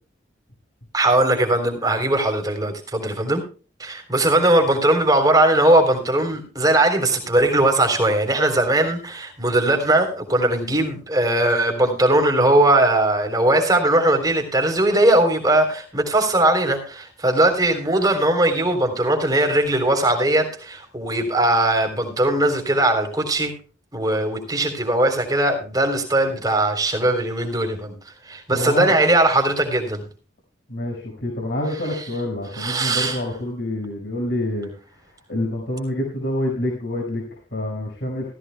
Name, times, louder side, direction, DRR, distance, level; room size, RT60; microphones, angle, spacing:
voice 1, 0.9-3.4 3.8-23.5 23.9-27.9 28.3-30.0 32.6-33.2, right 1 dB, 20° right, 4 dB, 3.6 m, -19 dB
voice 2, 28.5-29.0 30.7-34.7 35.3-38.3, left 1 dB, 65° left, -1 dB, 5.6 m, -27 dB
17.5 x 15.0 x 2.3 m, 0.37 s
head